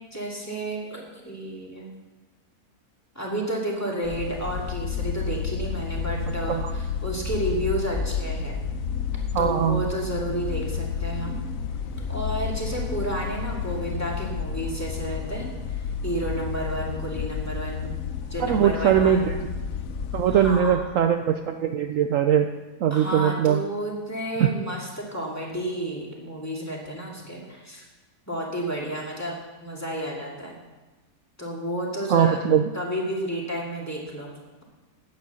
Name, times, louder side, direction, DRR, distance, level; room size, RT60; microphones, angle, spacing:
voice 1, 0.0-1.9 3.1-8.6 9.4-11.4 12.1-17.9 18.3-19.2 20.3-20.9 22.9-27.9 28.3-29.3 29.6-30.6 31.4-32.4 32.7-34.3, right 1 dB, 10° left, -3 dB, 2.3 m, -31 dB
sound 1, 4.0-20.6, left 6 dB, 65° left, 1.1 m, -31 dB
voice 2, 9.3-9.9 18.4-19.4 20.1-22.5 22.8-23.6 24.4-24.5 32.1-32.6, right 9 dB, 65° right, 6 dB, 0.9 m, -21 dB
9.2 x 9.1 x 7.0 m, 1.2 s
omnidirectional pair, 1.6 m